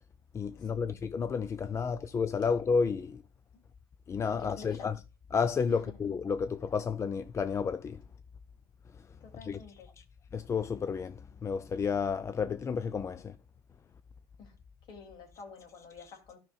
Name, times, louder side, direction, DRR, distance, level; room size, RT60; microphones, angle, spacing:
voice 1, 0.3-3.2 4.1-5.0 5.3-8.0 9.4-9.6 10.3-13.3, left 5 dB, 35° left, 0.5 m, -31 dB
voice 2, 4.4-4.9 5.7-6.0 9.2-9.9 14.4-14.6 14.9-16.4, left 5 dB, 65° left, 2.6 m, -49 dB
13.0 x 5.9 x 2.3 m
supercardioid pair, 80°, 9 cm